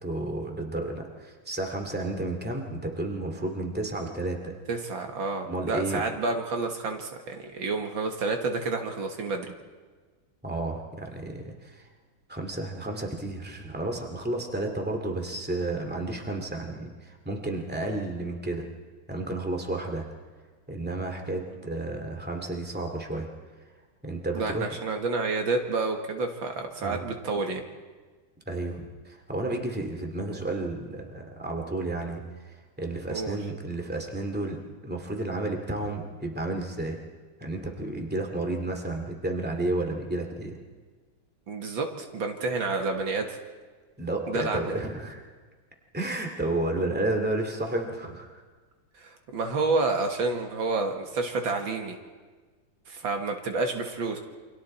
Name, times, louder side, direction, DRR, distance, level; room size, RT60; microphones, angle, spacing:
voice 1, 0.0-4.5 5.4-6.0 10.4-11.8 12.3-18.7 19.1-20.1 20.7-23.3 24.0-24.8 26.8-27.1 28.5-37.0 37.4-40.6 44.0-45.3 45.9-48.4, right 2 dB, 5° right, 3 dB, 2.2 m, -32 dB
voice 2, 4.7-9.5 24.3-27.6 33.1-33.4 41.5-43.4 44.3-44.7 49.0-52.0 52.9-54.2, right 3 dB, 75° right, 4 dB, 2.4 m, -29 dB
29.0 x 24.5 x 4.4 m, 1.4 s
omnidirectional pair, 2.2 m